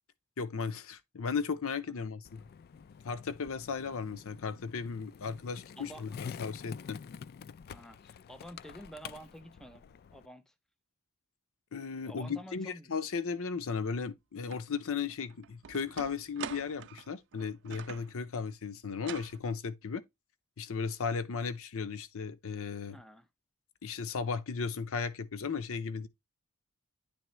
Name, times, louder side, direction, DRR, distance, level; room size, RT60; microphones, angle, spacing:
voice 1, 0.4-2.4 3.0-7.0 11.7-20.0 20.6-23.0 23.8-26.1, left 5 dB, 65° left, 0.7 m, -36 dB
Skateboard, 2.2-10.3, left 6 dB, 45° left, 0.3 m, -47 dB
voice 2, 5.8-6.1 7.7-9.9 10.1-10.5 12.0-12.9 22.9-23.3, equal, ahead, 0.6 m, -49 dB
sound 1, 14.5-14.6 15.1-18.1 19.0-19.4, right 8 dB, 55° right, 0.5 m, -45 dB
10.0 x 3.5 x 3.1 m
head